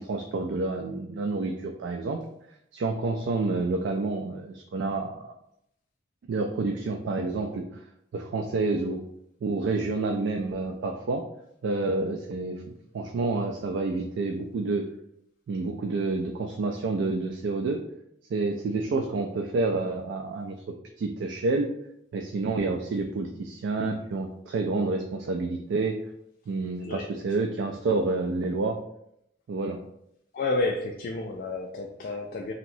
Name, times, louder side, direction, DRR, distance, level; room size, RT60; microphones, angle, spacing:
voice 1, 0.0-2.2 2.7-5.3 6.3-7.8 8.1-9.0 9.4-11.2 11.6-14.8 15.5-17.8 18.3-20.6 21.0-21.7 22.1-26.0 26.5-28.8 29.5-29.8, right 3 dB, 70° right, 3 dB, 0.3 m, -29 dB
voice 2, 30.3-32.5, left 3 dB, 50° left, 1 dB, 0.3 m, -30 dB
3.0 x 2.8 x 2.6 m, 0.76 s
head